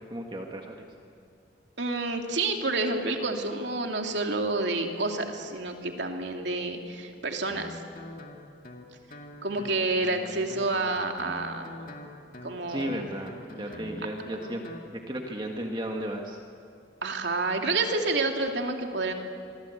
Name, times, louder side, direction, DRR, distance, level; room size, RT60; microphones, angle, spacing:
voice 1, 0.1-0.8 12.7-13.3 13.6-14.6 14.9-16.4, equal, 25° right, 1 dB, 1.7 m, -34 dB
voice 2, 1.8-7.8 9.4-11.7 12.4-12.9 17.0-19.1, right 3 dB, 75° right, 3 dB, 2.7 m, -29 dB
Guitar, 7.5-14.9, left 2 dB, 45° left, 2.2 m, -44 dB
25.5 x 24.0 x 8.3 m, 2.5 s
head